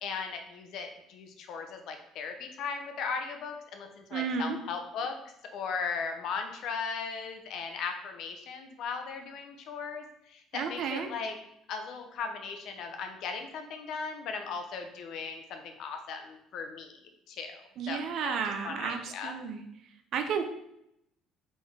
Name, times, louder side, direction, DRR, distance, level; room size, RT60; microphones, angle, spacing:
voice 1, 0.0-5.1 5.5-11.3 11.7-16.9 17.3-18.3 18.6-19.3, left 5 dB, 65° left, 5 dB, 0.7 m, -37 dB
voice 2, 4.1-4.6 10.5-11.1 17.8-19.6 20.1-20.4, right 6 dB, 65° right, 7 dB, 0.6 m, -32 dB
3.8 x 3.8 x 3.5 m, 0.79 s
cardioid pair, 100°, 0 cm